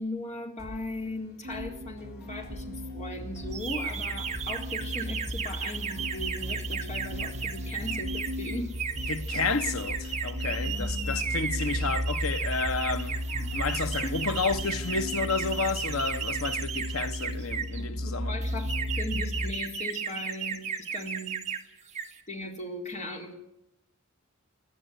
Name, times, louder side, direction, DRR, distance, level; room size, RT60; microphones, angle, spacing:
voice 1, 0.0-8.8 10.7-11.2 13.9-14.2 17.8-21.4 22.3-23.3, left 1 dB, 35° left, 3.8 m, -38 dB
sound 1, 0.6-16.0, equal, 50° left, 3.0 m, -48 dB
sound 2, 1.4-19.5, equal, 75° right, 2.2 m, -35 dB
sound 3, 3.5-17.8 18.4-21.6 21.9-22.2, right 6 dB, 35° right, 1.9 m, -35 dB
voice 2, 9.1-18.4, left 4 dB, 75° left, 1.2 m, -31 dB
22.0 x 14.5 x 9.2 m
head